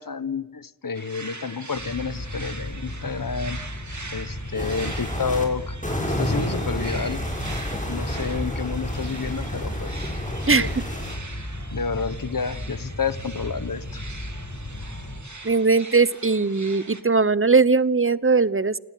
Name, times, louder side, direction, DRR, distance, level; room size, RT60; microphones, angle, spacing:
voice 1, 0.0-3.6 4.1-7.3 7.9-10.1 10.5-10.7 11.7-14.0, left 5 dB, 75° left, 15 dB, 1.1 m, -30 dB
sound 1, 0.9-17.0, right 3 dB, 60° right, 2.6 m, -42 dB
Roomtone Hallway upstairs Spinnerij Rear, 1.7-15.2, left 1 dB, 60° left, 6.9 m, -35 dB
sound 2, 4.5-5.4 5.8-11.2, equal, 25° left, 6.8 m, -30 dB
voice 2, 10.5-10.8 15.4-18.8, right 4 dB, 40° right, 18 dB, 0.9 m, -20 dB
29.0 x 18.5 x 9.3 m, 1.1 s
wide cardioid pair, 45°, 33 cm